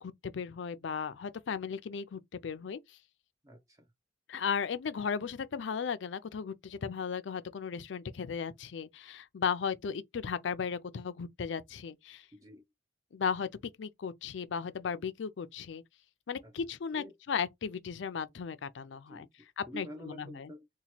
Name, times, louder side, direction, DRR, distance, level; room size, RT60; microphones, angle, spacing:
voice 1, 0.0-3.0 4.3-12.3 13.1-13.5 13.8-15.8 16.3-19.3 19.6-20.5, left 6 dB, 70° left, 0.4 m, -36 dB
voice 2, 3.4-3.9 12.3-12.6 16.4-16.5 16.9-17.2 19.1-20.7, left 1 dB, 20° right, 0.5 m, -48 dB
2.9 x 2.2 x 4.2 m
head